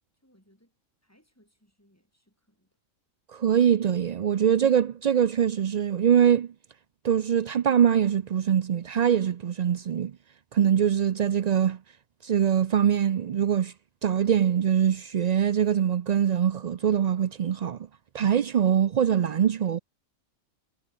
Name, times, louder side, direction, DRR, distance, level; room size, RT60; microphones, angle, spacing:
voice 1, 0.2-0.7 1.0-2.8, equal, 10° left, 7.9 m, -65 dB
voice 2, 3.3-6.5 7.0-10.1 10.5-11.8 12.2-13.7 14.0-17.8 18.1-19.8, right 8 dB, 80° right, 0.3 m, -23 dB
omnidirectional pair, 1.4 m